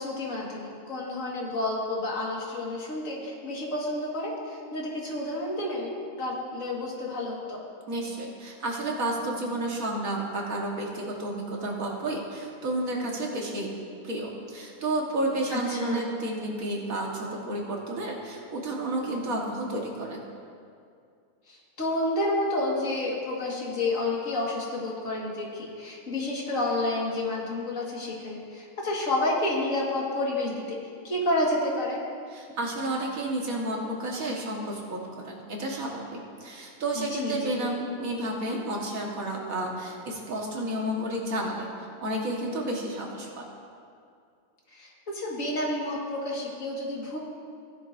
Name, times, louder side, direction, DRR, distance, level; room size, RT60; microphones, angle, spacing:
voice 1, 0.0-7.6 15.5-16.1 21.5-32.0 36.9-37.7 44.7-47.2, left 2 dB, 70° left, -3 dB, 2.2 m, -30 dB
voice 2, 7.9-13.7 14.0-20.2 32.3-43.4, right 1 dB, 90° right, -1 dB, 2.0 m, -31 dB
16.0 x 11.0 x 2.7 m, 2.3 s
omnidirectional pair, 1.4 m